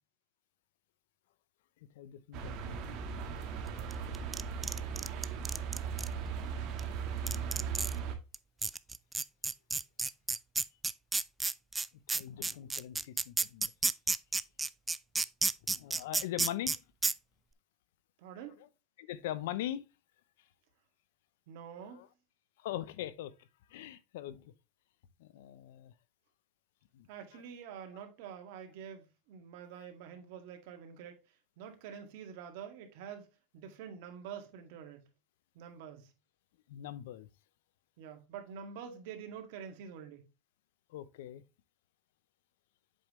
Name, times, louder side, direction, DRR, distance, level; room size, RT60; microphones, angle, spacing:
voice 1, 1.9-3.0 12.1-13.7 15.7-16.8 18.6-18.7 19.0-19.9 21.8-22.1 22.6-24.5 25.2-25.9 26.9-27.1 27.3-27.4 27.9-28.0 29.7-29.8 36.7-37.3 40.9-41.4, left 12 dB, 85° left, 0.6 m, -41 dB
sound 1, 2.3-8.1, right 6 dB, 55° right, 1.5 m, -38 dB
sound 2, 4.1-6.1 6.8-6.9 7.3-8.0 8.3-8.4 8.6-16.8 17.0-17.1, right 3 dB, 15° right, 0.3 m, -31 dB
voice 2, 18.2-18.7 21.5-22.0 27.1-31.2 31.6-35.0 35.6-36.1 38.0-40.3, right 7 dB, 70° right, 1.9 m, -47 dB
7.7 x 5.2 x 3.1 m
supercardioid pair, 125°, 0 cm